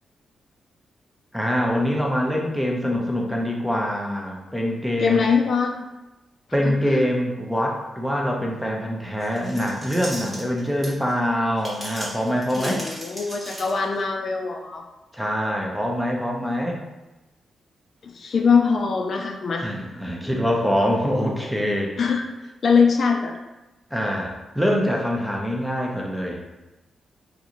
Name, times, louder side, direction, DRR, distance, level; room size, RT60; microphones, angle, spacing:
voice 1, 1.3-5.2 6.5-12.8 15.1-16.8 19.6-21.9 23.9-26.4, equal, ahead, -1 dB, 0.5 m, -24 dB
voice 2, 5.0-5.8 6.6-7.1 12.5-14.8 18.0-19.7 22.0-22.2 22.6-23.3, left 5 dB, 50° left, 2 dB, 0.3 m, -22 dB
sound 1, 9.2-11.1 11.6-14.0, right 1 dB, 20° right, 1.0 m, -36 dB
3.7 x 2.5 x 2.9 m, 1.0 s
wide cardioid pair, 130°, 0 cm